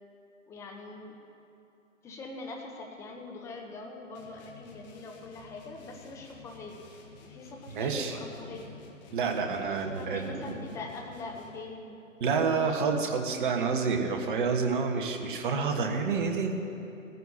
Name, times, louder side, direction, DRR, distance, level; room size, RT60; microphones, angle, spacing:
voice 1, 0.5-1.2 2.0-6.8 7.2-8.7 9.7-12.4, left 3 dB, 5° left, 1 dB, 0.8 m, -43 dB
sound 1, 4.2-11.8, left 4 dB, 35° left, 1.6 m, -52 dB
voice 2, 7.7-8.2 9.1-10.5 12.2-16.5, right 5 dB, 40° right, 3 dB, 1.4 m, -28 dB
20.0 x 15.0 x 2.8 m, 2.8 s
figure-of-eight pair, 135°, 39 cm